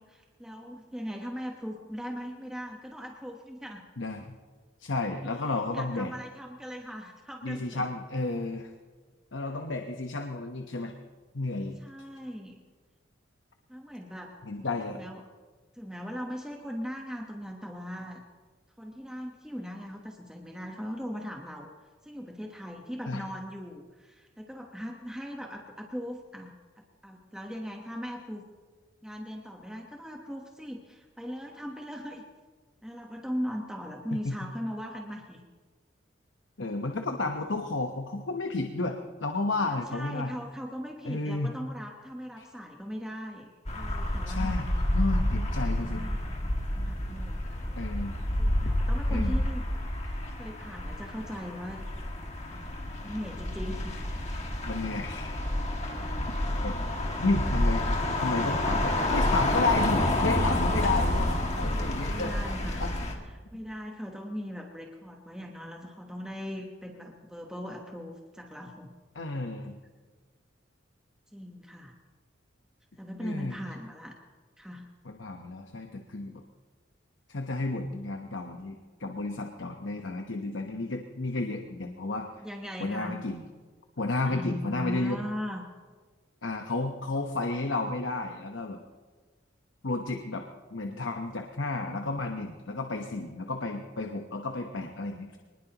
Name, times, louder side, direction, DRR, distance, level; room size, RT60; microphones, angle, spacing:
voice 1, 0.0-3.8 5.7-7.8 11.8-12.6 13.7-14.3 14.9-15.2 15.7-18.2 18.8-21.7 22.0-28.4 29.0-32.2 32.8-35.4 39.6-44.9 45.9-46.4 46.7-47.7 48.4-49.6 50.3-51.8 52.5-54.0 61.6-62.8 63.5-68.9 71.3-71.9 73.0-74.2 74.6-74.9 82.4-83.2 84.3-85.6, equal, 5° right, 1 dB, 1.1 m, -39 dB
voice 2, 4.0-4.3 4.8-6.1 7.4-8.7 9.3-10.9 11.3-11.8 14.4-15.0 23.1-23.3 34.1-34.3 36.6-40.3 41.0-41.6 42.4-42.5 44.3-46.0 47.8-48.2 48.7-48.8 49.1-49.4 54.7-55.4 56.6-56.8 57.2-57.8 58.2-62.3 62.8-62.9 69.1-69.8 73.2-73.6 75.0-76.4 77.3-82.3 82.8-83.4 84.0-85.2 86.4-88.8 89.8-90.5 90.7-95.4, left 3 dB, 80° left, 4 dB, 1.1 m, -32 dB
sound 1, 43.7-63.1, left 1 dB, 40° left, 2.1 m, -29 dB
24.0 x 20.0 x 3.0 m, 1.4 s
head